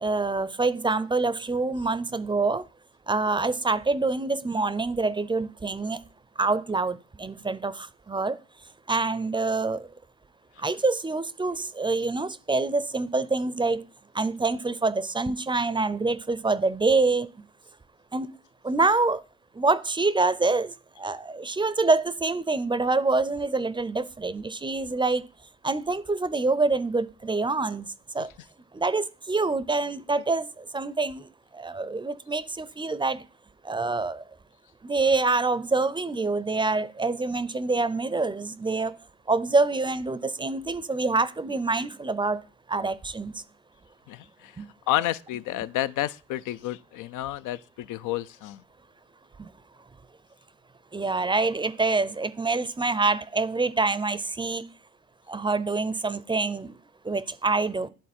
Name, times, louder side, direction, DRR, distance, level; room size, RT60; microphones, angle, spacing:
voice 1, 0.0-2.6 3.1-6.0 6.4-8.4 8.9-9.9 10.6-13.8 14.1-17.3 18.1-18.3 18.6-19.2 19.6-25.2 25.6-27.9 28.1-28.3 28.7-31.3 31.5-33.2 33.6-34.2 34.8-38.9 39.3-42.4 42.7-43.4 44.6-44.7 49.4-49.5 50.9-54.6 55.3-56.7 57.0-57.9, right 3 dB, 15° right, 0.4 m, -26 dB
voice 2, 44.9-47.6 47.9-48.6, left 14 dB, 85° left, 0.4 m, -29 dB
11.0 x 3.8 x 4.3 m
cardioid pair, 90°, 30 cm